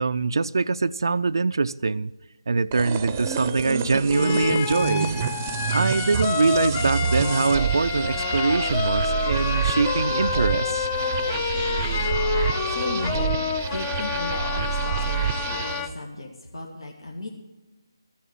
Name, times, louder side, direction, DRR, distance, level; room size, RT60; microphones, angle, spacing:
voice 1, 0.0-2.1 2.5-5.2 5.7-10.9, right 4 dB, 60° right, 0.4 m, -23 dB
sound 1, 2.7-15.9, right 8 dB, 25° right, 0.7 m, -28 dB
sound 2, 4.1-15.9, left 6 dB, 20° left, 0.6 m, -28 dB
voice 2, 12.6-17.3, left 2 dB, 80° left, 2.2 m, -35 dB
14.0 x 7.2 x 8.7 m
figure-of-eight pair, 160°, 2 cm